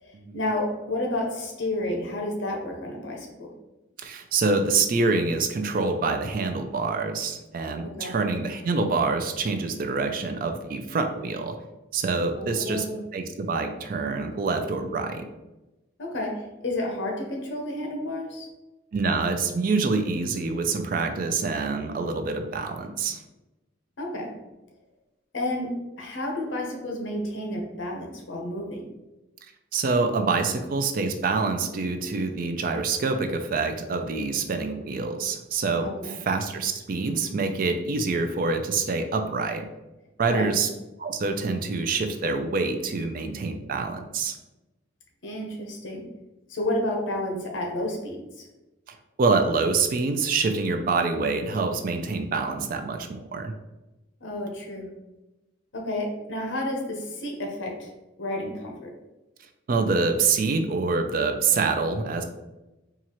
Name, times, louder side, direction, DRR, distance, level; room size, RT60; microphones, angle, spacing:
voice 1, 0.0-3.5 7.8-8.1 12.3-13.0 16.0-18.5 24.0-24.4 25.3-28.8 35.8-36.2 40.3-40.5 45.2-46.1 46.5-48.5 54.2-54.9 55.7-57.9 58.2-58.9, left 1 dB, 75° left, 1 dB, 0.8 m, -31 dB
voice 2, 4.0-11.6 11.9-12.9 13.1-15.2 18.9-23.2 29.7-39.7 40.2-40.7 41.0-44.4 48.9-53.5 59.7-62.2, right 4 dB, 45° right, 7 dB, 0.4 m, -26 dB
4.1 x 2.4 x 2.9 m, 1.0 s
head